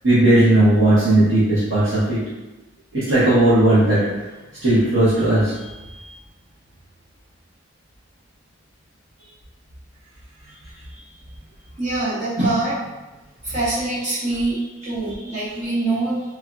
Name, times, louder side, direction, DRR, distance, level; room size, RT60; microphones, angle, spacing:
voice 1, 0.0-2.2 2.9-4.0 4.6-5.5, right 1 dB, 75° right, -11 dB, 0.9 m, -16 dB
voice 2, 11.8-12.8 13.4-16.2, right 2 dB, 40° right, -10 dB, 0.8 m, -24 dB
3.3 x 2.3 x 2.2 m, 1.1 s
head